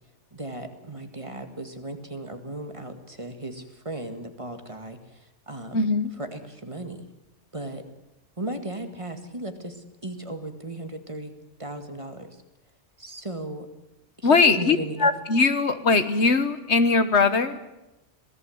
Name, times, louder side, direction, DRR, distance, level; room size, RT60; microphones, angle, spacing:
voice 1, 0.3-5.9 6.2-7.1 7.5-7.8 8.4-11.3 11.6-12.4 13.0-13.7 14.2-15.1, right 1 dB, 25° right, 7 dB, 1.9 m, -36 dB
voice 2, 5.7-6.1 14.2-17.6, left 4 dB, 70° left, 11 dB, 1.7 m, -21 dB
26.5 x 18.0 x 7.9 m, 0.95 s
omnidirectional pair, 1.2 m